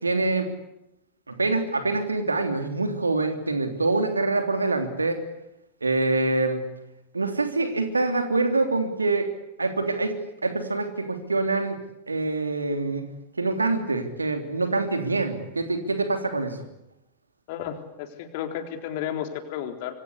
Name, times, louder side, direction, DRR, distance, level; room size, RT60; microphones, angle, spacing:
voice 1, 0.0-0.5 1.3-5.2 5.8-6.6 7.1-9.3 9.6-10.1 10.4-11.8 12.1-13.1 13.4-16.6, right 3 dB, 80° right, 7 dB, 3.3 m, -25 dB
voice 2, 17.5-19.9, left 9 dB, 50° left, 6 dB, 3.9 m, -33 dB
27.0 x 24.0 x 8.4 m, 0.86 s
figure-of-eight pair, 90°, 0 cm